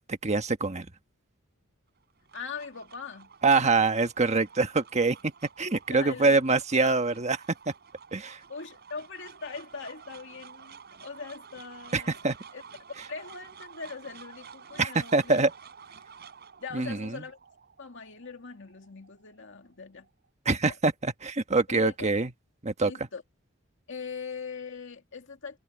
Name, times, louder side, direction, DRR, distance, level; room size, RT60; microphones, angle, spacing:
voice 1, 0.1-0.9 3.4-5.2 5.6-7.4 8.1-8.4 11.9-12.3 14.8-15.5 16.7-17.1 20.4-22.3 22.6-22.9, right 3 dB, 35° right, 1.3 m, -24 dB
sound 1, 2.0-20.3, right 6 dB, 55° right, 4.8 m, -51 dB
voice 2, 2.3-3.3 5.9-6.4 6.7-7.0 8.5-12.2 12.5-12.6 13.1-15.5 16.6-17.4 17.8-20.1 20.7-20.8 21.7-21.9 22.8-23.2 23.9-25.6, left 5 dB, 65° left, 2.3 m, -41 dB
head